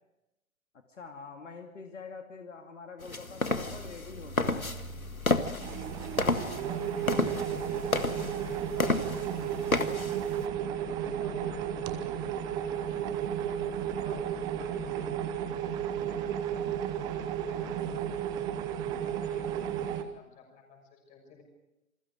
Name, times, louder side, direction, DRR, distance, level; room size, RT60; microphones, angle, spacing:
voice 1, 0.9-4.7, left 4 dB, 60° left, 4 dB, 2.6 m, -45 dB
sound 1, 3.0-10.4, left 2 dB, 90° left, 1.9 m, -32 dB
sound 2, 3.5-16.2, left 2 dB, 25° right, 4.2 m, -49 dB
sound 3, 5.6-20.0, right 9 dB, 10° right, 0.7 m, -33 dB
voice 2, 6.1-10.2 10.7-13.1 13.4-14.3 14.6-18.1 18.8-21.4, left 5 dB, 20° left, 3 dB, 6.3 m, -52 dB
28.5 x 22.0 x 4.9 m, 0.91 s
figure-of-eight pair, 130°, 41 cm